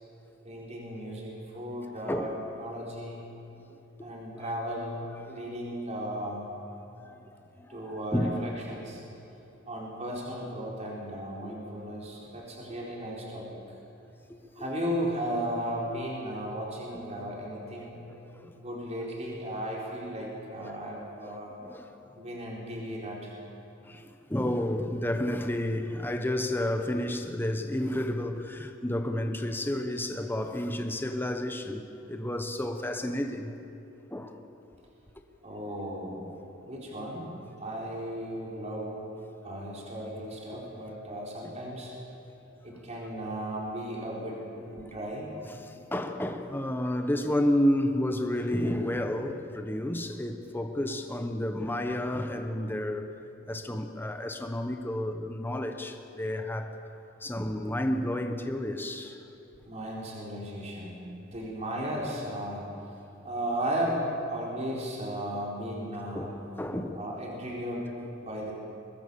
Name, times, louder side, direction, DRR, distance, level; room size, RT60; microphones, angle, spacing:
voice 1, 0.4-2.3 2.6-3.2 4.0-6.5 7.7-9.0 9.7-13.6 14.6-18.0 18.5-21.5 22.1-23.3 35.4-36.3 36.6-39.0 39.4-41.9 42.6-45.3 59.6-62.7 63.2-66.2 66.9-67.9 68.2-68.5, equal, 35° right, -3 dB, 4.3 m, -35 dB
voice 2, 3.5-4.4 7.0-8.8 11.4-11.6 14.6-14.7 18.1-18.5 20.6-20.8 21.2-21.3 21.6-21.9 23.8-33.6 34.1-34.4 41.4-41.5 45.5-53.1 53.5-56.7 57.2-59.2 61.0-61.2 66.1-67.0, left 1 dB, 10° left, 6 dB, 1.1 m, -31 dB
24.0 x 20.5 x 7.0 m, 2.8 s
head